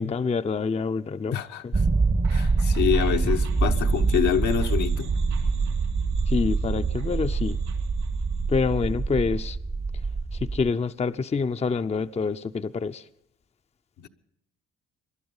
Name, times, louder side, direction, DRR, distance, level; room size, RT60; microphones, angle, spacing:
voice 1, 0.0-1.7 6.3-7.6 8.5-9.6 10.4-13.0, left 5 dB, 20° left, 0.6 m, -27 dB
voice 2, 1.3-1.6 2.3-5.1 14.0-14.1, left 9 dB, 75° left, 1.1 m, -26 dB
sound 1, 1.7-10.7, right 3 dB, 20° right, 0.7 m, -25 dB
sound 2, 2.2-9.4, right 7 dB, 75° right, 3.0 m, -35 dB
22.0 x 11.5 x 5.5 m
supercardioid pair, 65°, 30 cm